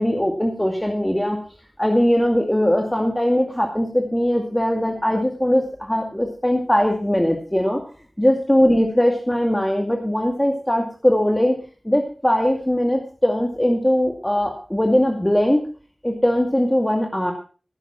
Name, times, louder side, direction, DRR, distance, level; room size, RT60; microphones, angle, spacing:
voice 1, 0.0-1.4 1.8-7.8 8.2-11.5 11.8-15.6 16.0-17.3, equal, 15° left, 2 dB, 2.3 m, -20 dB
16.0 x 8.0 x 5.8 m, 0.39 s
wide cardioid pair, 50°, 0 cm